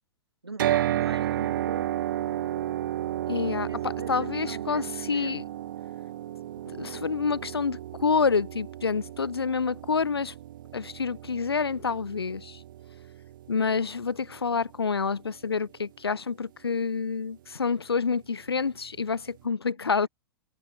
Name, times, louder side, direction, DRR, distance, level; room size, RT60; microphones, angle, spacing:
voice 1, 0.4-1.9 3.7-5.4 19.6-19.7 20.0-20.1, right 3 dB, 80° right, 6.3 m, -42 dB
sound 1, 0.6-14.7, right 13 dB, 55° right, 1.3 m, -33 dB
voice 2, 3.3-5.4 6.6-10.3 10.7-12.6 13.5-20.1, left 5 dB, 75° left, 1.3 m, -28 dB
figure-of-eight pair, 100°, 13 cm